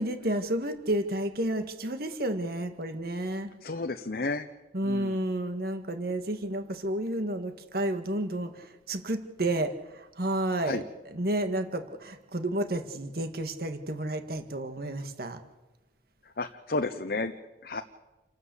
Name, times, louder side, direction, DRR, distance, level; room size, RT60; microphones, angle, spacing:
voice 1, 0.0-3.5 4.7-15.4, right 1 dB, 60° right, 8 dB, 1.8 m, -31 dB
voice 2, 3.6-4.5 4.8-5.2 10.6-10.8 16.4-17.3 17.6-17.8, left 3 dB, 60° left, 6 dB, 0.9 m, -32 dB
29.0 x 12.5 x 8.3 m, 1.1 s
head